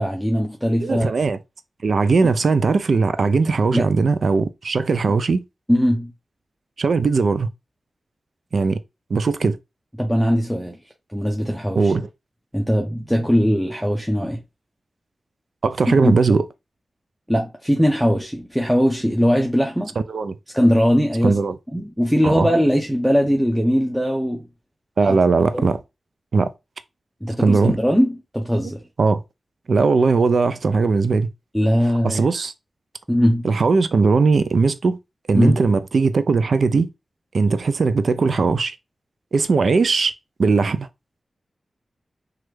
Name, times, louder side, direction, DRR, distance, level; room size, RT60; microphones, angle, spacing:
voice 1, 0.0-1.1 3.7-3.9 5.7-6.1 10.0-10.8 11.1-11.9 12.5-14.4 15.9-16.1 17.3-19.9 20.5-21.4 21.7-24.5 25.0-25.2 25.5-25.7 27.2-28.8 31.5-32.2 33.1-33.5 35.3-35.6, equal, ahead, 0.7 m, -20 dB
voice 2, 0.8-1.4 1.8-5.4 6.8-7.5 8.5-8.8 9.1-9.6 11.7-12.1 15.6-16.4 20.0-20.4 21.2-21.6 22.2-22.5 25.0-25.8 26.3-26.5 27.4-27.8 29.0-29.2 29.7-31.3 32.0-32.5 33.4-35.0 35.3-36.9 37.3-38.8 39.3-40.1 40.4-40.9, right 4 dB, 75° right, 0.3 m, -19 dB
3.1 x 2.4 x 3.1 m
cardioid pair, 40°, 0 cm